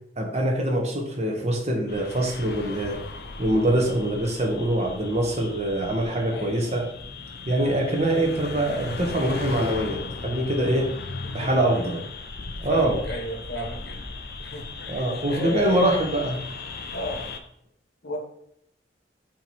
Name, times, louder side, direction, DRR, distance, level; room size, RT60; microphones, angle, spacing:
voice 1, 0.2-3.0 3.4-6.8 7.4-10.9 11.3-12.0 12.6-13.0 14.9-16.4, right 1 dB, 40° right, 1 dB, 1.3 m, -24 dB
sound 1, 1.9-17.4, left 3 dB, 60° left, 0.6 m, -37 dB
voice 2, 6.3-6.7 11.2-11.9 12.6-14.9 15.2-16.0 16.9-17.3 18.0-18.2, left 1 dB, 75° left, 1 dB, 1.5 m, -34 dB
7.7 x 3.2 x 4.3 m, 0.71 s
head